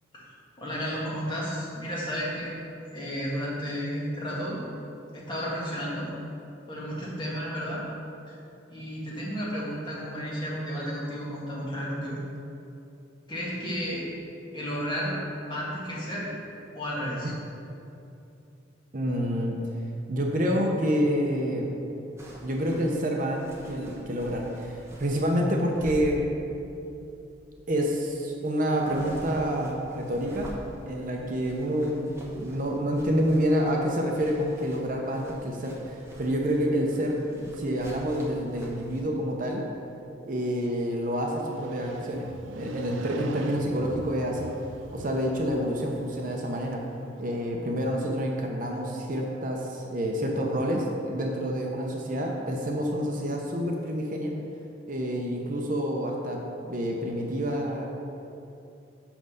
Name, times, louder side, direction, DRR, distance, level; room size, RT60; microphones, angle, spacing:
voice 1, 0.6-2.5 2.9-4.6 5.1-6.1 6.7-7.8 8.3-8.4 8.7-12.2 13.3-14.1 14.5-15.1 15.4-16.3 16.7-17.3, equal, 25° left, -6 dB, 1.7 m, -32 dB
voice 2, 18.9-19.6 20.1-21.7 22.4-26.2 27.7-30.5 30.8-32.1 32.3-39.6 40.3-42.3 42.6-44.5 44.9-46.8 47.2-54.3 54.9-56.4 56.7-57.9, equal, 45° right, 0 dB, 0.7 m, -28 dB
sound 1, 22.2-39.0, equal, 15° right, 0.9 m, -47 dB
Motorcycle, 41.3-47.2, right 3 dB, 80° right, 0.5 m, -42 dB
5.9 x 5.4 x 6.7 m, 2.7 s
head